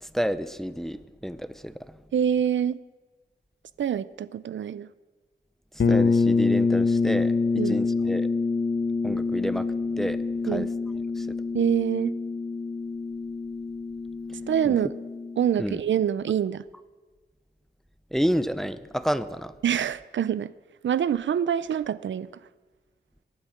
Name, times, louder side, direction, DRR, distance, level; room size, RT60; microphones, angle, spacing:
voice 1, 0.0-2.0 5.9-8.3 9.0-10.7 11.2-11.3 14.6-14.8 15.6-15.8 18.1-19.5, equal, ahead, 14 dB, 0.6 m, -30 dB
voice 2, 2.1-2.8 3.8-4.9 7.6-7.8 10.5-10.7 11.5-12.1 14.5-14.9 15.4-16.6 19.6-20.5 20.8-22.3, right 9 dB, 85° right, 17 dB, 0.5 m, -25 dB
sound 1, 5.8-15.5, left 4 dB, 65° left, 1.0 m, -26 dB
23.5 x 9.0 x 6.4 m, 1.3 s
wide cardioid pair, 115°, 19 cm